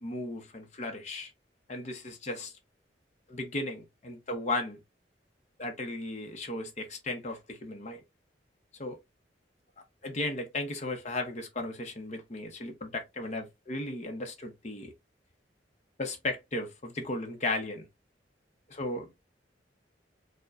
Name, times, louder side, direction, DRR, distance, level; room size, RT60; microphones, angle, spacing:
voice 1, 0.0-1.3 1.7-2.5 3.3-4.8 5.6-8.0 8.8-9.0 10.0-14.9 16.0-17.9 18.7-19.1, left 2 dB, 40° left, 0.7 m, -35 dB
4.5 x 2.1 x 2.3 m
head